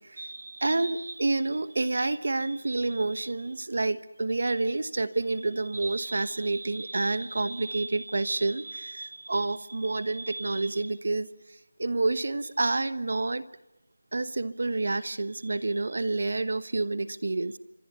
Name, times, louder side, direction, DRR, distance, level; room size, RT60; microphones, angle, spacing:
voice 1, 0.0-13.4 14.1-17.6, right 2 dB, 50° right, 15 dB, 1.2 m, -29 dB
28.5 x 25.5 x 7.0 m, 0.88 s
figure-of-eight pair, 175°, 0 cm